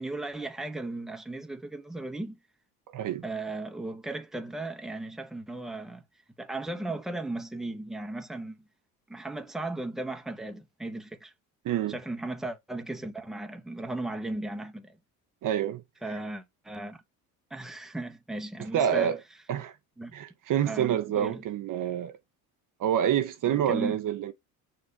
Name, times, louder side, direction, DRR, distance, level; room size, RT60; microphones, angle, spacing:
voice 1, 0.0-2.4 3.2-6.0 6.4-8.6 9.1-11.3 11.9-15.0 16.0-17.0 17.5-19.2 20.0-20.1 20.7-21.4 23.5-24.0, right 2 dB, ahead, 0.9 m, -36 dB
voice 2, 2.9-3.2 11.6-12.0 15.4-15.8 18.7-19.2 19.5-19.7 20.1-22.2 22.8-24.3, right 10 dB, 45° right, 0.7 m, -27 dB
6.3 x 3.2 x 5.3 m
hypercardioid pair, 60°, 43 cm